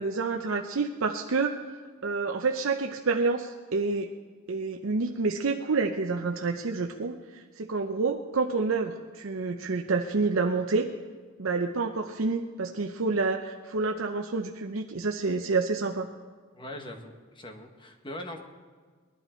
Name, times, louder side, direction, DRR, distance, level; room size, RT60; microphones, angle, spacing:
voice 1, 0.0-1.6 2.0-4.1 4.5-10.9 11.4-16.1, right 4 dB, 75° right, 4 dB, 0.7 m, -28 dB
voice 2, 16.5-18.4, left 1 dB, 25° left, 4 dB, 1.4 m, -41 dB
19.5 x 11.5 x 4.4 m, 1.5 s
head